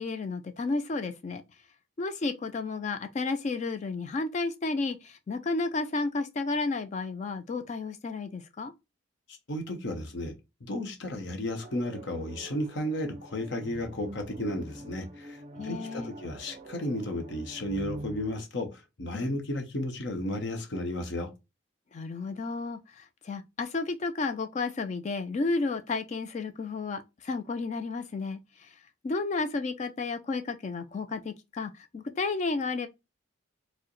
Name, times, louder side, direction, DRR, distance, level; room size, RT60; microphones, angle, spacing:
voice 1, 0.0-1.4 2.0-8.7 15.6-16.1 19.1-19.3 21.9-28.8 29.0-32.9, left 3 dB, 35° left, 0.3 m, -32 dB
voice 2, 9.3-10.3 10.6-21.3, left 1 dB, 55° left, 0.8 m, -33 dB
sound 1, 11.6-18.4, right 1 dB, 30° right, 0.5 m, -45 dB
4.5 x 2.1 x 3.0 m
head